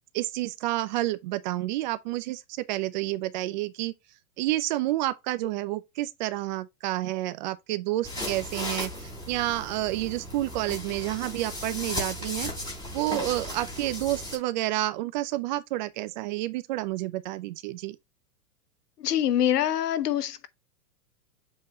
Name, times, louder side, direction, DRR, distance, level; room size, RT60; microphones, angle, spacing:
voice 1, 0.1-3.9 4.4-12.5 12.9-18.0, right 16 dB, 30° right, 0.5 m, -29 dB
sound 1, 8.0-14.4, left 1 dB, 10° left, 3.4 m, -36 dB
voice 2, 19.0-20.5, left 10 dB, 80° left, 1.0 m, -25 dB
7.6 x 4.2 x 2.9 m
hypercardioid pair, 130°, 46 cm